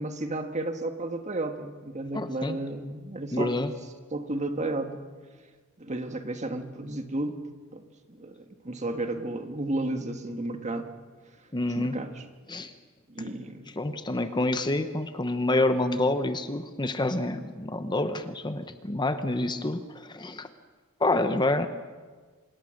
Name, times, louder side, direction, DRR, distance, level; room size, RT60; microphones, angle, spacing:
voice 1, 0.0-3.5 4.1-5.1 5.8-7.4 7.7-10.9 11.7-12.2 13.1-13.6, right 2 dB, 35° right, 6 dB, 1.7 m, -33 dB
voice 2, 2.1-2.6 3.3-3.7 11.5-12.0 12.5-12.7 13.8-20.5 21.0-21.7, left 2 dB, 20° left, 9 dB, 0.9 m, -27 dB
26.0 x 21.5 x 6.5 m, 1.4 s
head